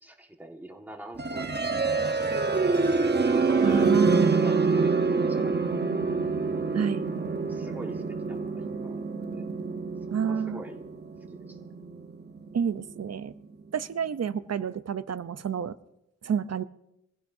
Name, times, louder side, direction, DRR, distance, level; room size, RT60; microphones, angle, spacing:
voice 1, 0.0-2.6 3.2-5.9 7.4-9.5 10.2-10.8 11.3-11.6, right 1 dB, 5° right, 1 dB, 1.6 m, -43 dB
sound 1, 1.2-13.1, right 4 dB, 35° right, 1.0 m, -26 dB
voice 2, 3.6-4.4 6.7-7.0 10.1-10.6 12.5-13.3 13.7-15.8 16.2-16.6, right 7 dB, 60° right, 14 dB, 0.6 m, -29 dB
23.0 x 15.5 x 2.7 m, 0.87 s
wide cardioid pair, 85°, 30 cm